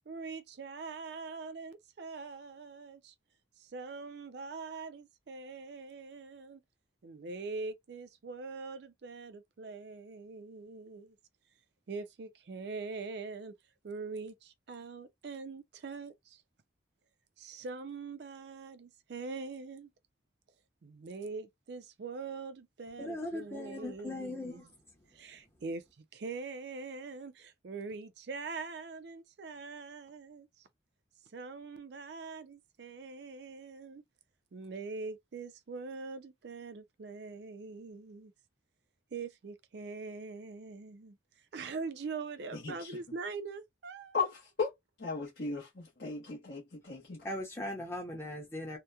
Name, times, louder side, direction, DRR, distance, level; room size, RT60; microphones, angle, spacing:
voice 1, 0.1-3.1 3.6-6.6 7.0-11.2 11.9-13.5 13.8-16.4 17.4-19.9 20.8-24.6 25.1-30.7 31.3-34.0 34.5-38.3 39.1-41.2 41.5-44.2, right 4 dB, 60° right, 0.4 m, -43 dB
voice 2, 23.0-24.6 47.2-48.8, left 1 dB, 15° left, 0.6 m, -39 dB
voice 3, 42.5-43.0 44.1-44.7 45.0-47.3, left 4 dB, 60° left, 0.8 m, -36 dB
2.8 x 2.1 x 2.3 m
head